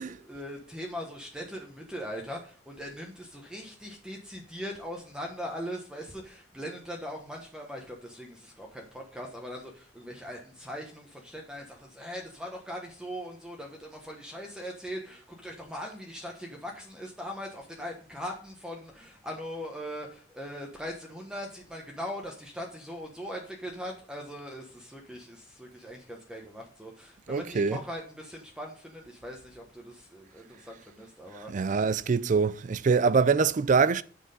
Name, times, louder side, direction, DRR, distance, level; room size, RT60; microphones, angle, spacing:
voice 1, 0.0-31.8, equal, 5° right, 1.1 m, -40 dB
voice 2, 27.3-27.8 31.5-34.0, right 5 dB, 40° right, 0.4 m, -24 dB
7.8 x 6.1 x 5.2 m
head